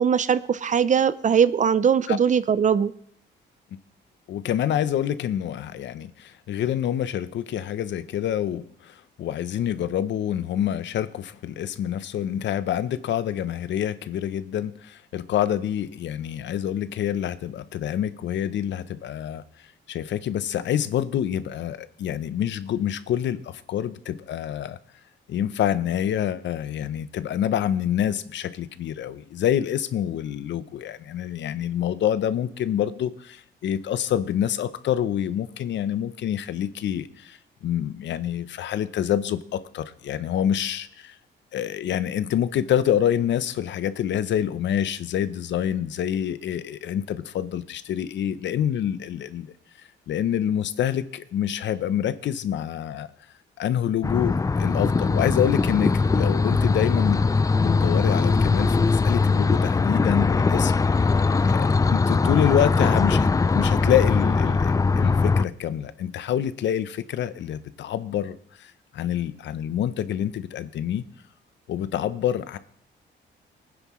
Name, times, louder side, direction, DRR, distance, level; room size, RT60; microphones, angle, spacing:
voice 1, 0.0-2.9, right 7 dB, 40° right, 16 dB, 0.6 m, -20 dB
voice 2, 4.3-24.8 25.3-41.2 41.5-49.5 50.1-53.1 53.6-57.3 57.6-61.2 61.4-63.3 63.5-71.0 71.7-72.6, left 10 dB, 65° left, 14 dB, 0.7 m, -27 dB
sound 1, 54.0-65.4, left 4 dB, 15° left, 0.4 m, -21 dB
21.0 x 9.8 x 3.1 m, 0.66 s
cardioid pair, 90°, 20 cm